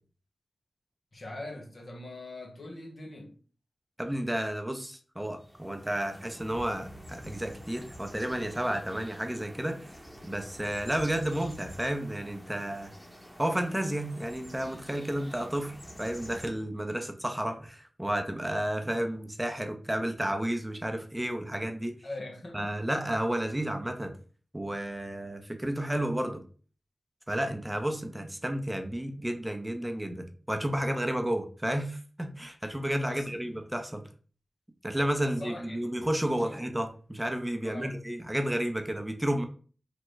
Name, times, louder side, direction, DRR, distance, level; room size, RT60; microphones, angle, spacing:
voice 1, 1.1-3.4 22.0-23.0 33.1-33.3 35.2-35.9 36.4-36.6 37.6-38.0, left 2 dB, 65° left, 0.8 m, -42 dB
voice 2, 4.0-12.9 13.4-21.9 22.5-24.1 24.5-26.4 27.3-34.0 34.8-39.4, right 1 dB, 15° right, 0.5 m, -32 dB
sound 1, 5.4-16.5, equal, 10° left, 0.9 m, -48 dB
3.3 x 2.0 x 3.1 m
cardioid pair, 40°, 0 cm